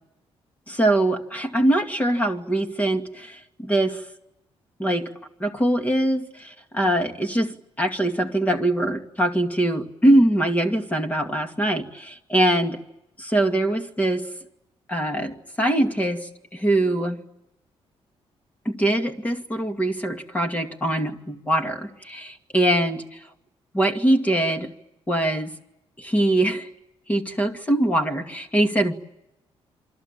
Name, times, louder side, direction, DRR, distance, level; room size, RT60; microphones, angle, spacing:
voice 1, 0.7-4.0 4.8-5.1 5.4-12.8 13.2-14.2 14.9-17.2 18.7-23.0 23.7-24.7 25.1-25.5 26.0-26.7 27.1-28.9, right 1 dB, 15° left, 5 dB, 2.3 m, -23 dB
28.0 x 24.5 x 8.8 m, 0.84 s
cardioid pair, 165°, 11 cm